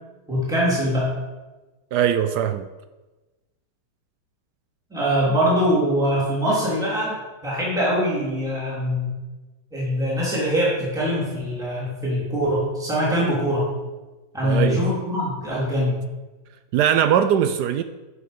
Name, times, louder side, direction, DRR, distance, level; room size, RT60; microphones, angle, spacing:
voice 1, 0.3-1.1 4.9-7.2 7.4-9.2 9.7-13.7 14.3-16.0, equal, ahead, 3.4 m, -23 dB
voice 2, 1.9-2.7 14.4-14.9 16.7-17.8, right 9 dB, 80° right, 0.9 m, -20 dB
12.5 x 6.9 x 5.2 m
omnidirectional pair, 2.3 m